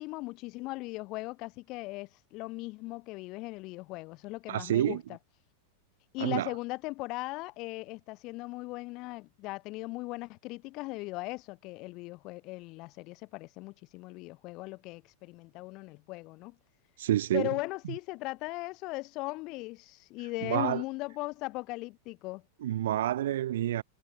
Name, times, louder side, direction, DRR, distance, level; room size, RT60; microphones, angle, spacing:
voice 1, 0.0-5.2 6.1-16.6 17.3-22.4, left 22 dB, 45° left, 3.6 m, -38 dB
voice 2, 4.5-5.0 6.2-6.5 17.0-17.5 20.4-20.8 22.6-23.8, right 13 dB, 65° right, 3.7 m, -28 dB
figure-of-eight pair, 95°, 0 cm